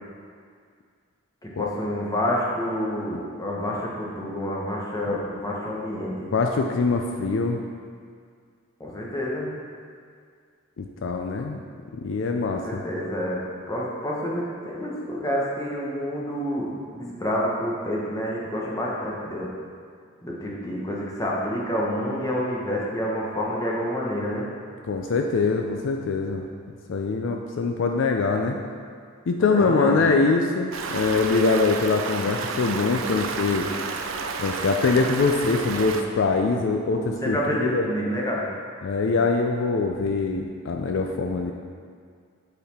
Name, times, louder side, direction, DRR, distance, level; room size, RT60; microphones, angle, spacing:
voice 1, 1.4-6.3 8.8-9.5 12.5-13.4 13.7-19.5 20.2-24.5 29.4-30.0 37.0-38.5, equal, 15° left, -4 dB, 1.0 m, -28 dB
voice 2, 6.3-7.6 10.8-11.6 11.9-12.8 24.8-26.4 26.9-28.6 29.3-33.7 34.4-37.9 38.8-41.5, left 4 dB, 65° left, 3 dB, 0.4 m, -23 dB
Stream, 30.7-36.0, right 4 dB, 70° right, 0.5 m, -31 dB
8.4 x 4.2 x 4.2 m, 2.1 s
head